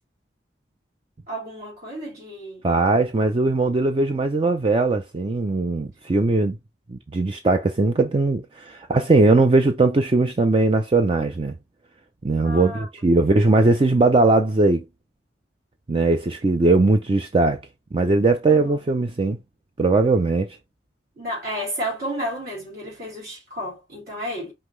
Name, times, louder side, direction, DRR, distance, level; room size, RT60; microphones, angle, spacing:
voice 1, 1.3-2.6 12.4-12.9 18.5-18.7 21.2-24.5, equal, 50° right, 3.3 m, -32 dB
voice 2, 2.6-6.6 6.9-11.6 12.2-14.8 15.9-17.6 17.9-19.4 19.8-20.6, right 3 dB, 30° right, 0.4 m, -19 dB
5.6 x 3.0 x 3.1 m
head